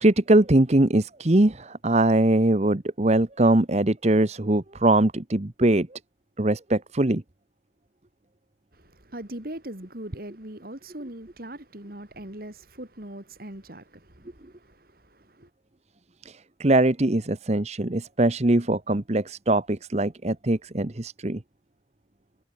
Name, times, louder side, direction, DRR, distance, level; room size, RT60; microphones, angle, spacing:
voice 1, 0.0-5.9 6.4-7.2 16.2-16.3 16.6-21.4, right 1 dB, 35° right, 1.0 m, -22 dB
voice 2, 8.7-15.5, right 1 dB, 50° right, 3.1 m, -41 dB
head